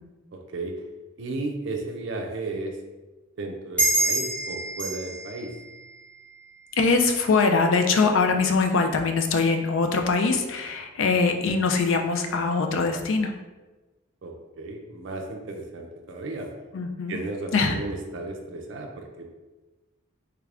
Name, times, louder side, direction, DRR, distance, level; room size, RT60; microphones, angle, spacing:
voice 1, 0.3-0.8 1.2-2.8 3.4-5.6 14.2-16.5 17.1-19.3, right 2 dB, 60° right, 2 dB, 0.4 m, -34 dB
sound 1, 3.8-6.9, right 2 dB, 5° left, 0.9 m, -28 dB
voice 2, 6.7-13.3 16.7-17.2 17.5-17.8, left 4 dB, 70° left, 4 dB, 0.4 m, -22 dB
3.3 x 2.4 x 3.3 m, 1.2 s
head